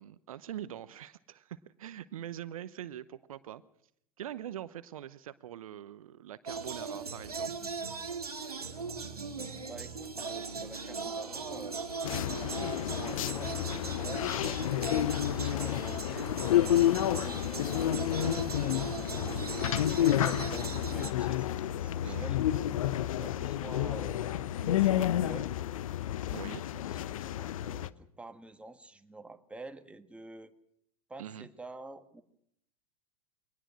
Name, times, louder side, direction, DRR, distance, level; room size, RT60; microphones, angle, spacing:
voice 1, 0.0-3.6 4.2-7.5 22.0-22.3 26.3-26.7 31.2-31.5, right 11 dB, 65° right, 15 dB, 0.9 m, -43 dB
sound 1, 6.5-21.1, right 4 dB, 85° right, 1.9 m, -39 dB
voice 2, 9.6-12.0 12.8-14.6 15.1-22.4 23.2-25.5 26.7-30.5 31.1-32.2, right 2 dB, 5° right, 7 dB, 1.6 m, -48 dB
sound 2, 12.0-27.9, left 12 dB, 65° left, 0.8 m, -30 dB
24.0 x 19.0 x 6.2 m, 0.70 s
figure-of-eight pair, 90°, 19 cm